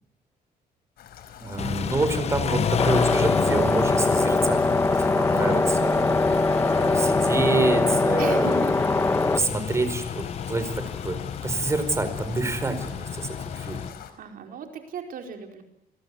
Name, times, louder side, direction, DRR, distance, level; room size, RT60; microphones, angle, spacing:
Rain, 1.0-14.1, left 9 dB, 80° left, 4.6 m, -43 dB
voice 1, 1.4-6.0 6.7-8.6 9.3-14.0, right 2 dB, 20° right, 9 dB, 4.7 m, -27 dB
Car / Idling / Accelerating revving vroom, 1.6-13.9, left 8 dB, 40° left, 1.0 m, -31 dB
voice 2, 2.5-2.8 5.3-5.7 8.2-8.7 14.2-15.6, right 6 dB, 65° right, 4 dB, 4.8 m, -37 dB
sound 1, 2.8-9.4, left 3 dB, 15° left, 1.6 m, -22 dB
28.0 x 21.5 x 9.7 m, 0.84 s
cardioid pair, 140°, 16 cm